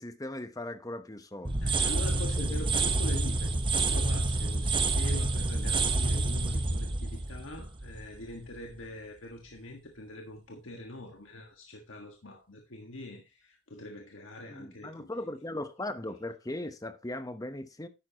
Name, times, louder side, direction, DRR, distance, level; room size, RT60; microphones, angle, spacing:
voice 1, 0.0-1.7 2.3-2.6 14.5-17.9, left 1 dB, 20° left, 0.9 m, -38 dB
sound 1, 1.4-8.3, right 2 dB, 25° right, 0.9 m, -28 dB
voice 2, 1.6-15.4, left 1 dB, 75° left, 1.6 m, -43 dB
11.0 x 9.0 x 2.9 m
head